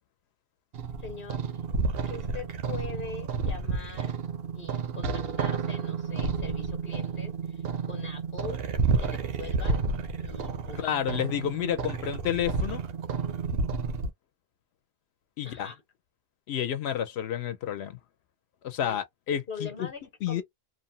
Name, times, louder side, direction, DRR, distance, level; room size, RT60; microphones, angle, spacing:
sound 1, 0.7-14.1, right 5 dB, 70° right, 0.8 m, -31 dB
voice 1, 1.0-1.4 2.1-4.1 4.5-8.6 9.0-9.9 10.2-10.8 15.4-15.8 18.8-19.0 19.5-20.0 20.3-20.4, left 4 dB, 60° left, 0.9 m, -42 dB
voice 2, 10.8-12.8 15.4-15.7 16.5-18.0 18.6-19.9 20.2-20.4, left 10 dB, 90° left, 0.8 m, -30 dB
2.8 x 2.0 x 2.6 m
omnidirectional pair, 1.0 m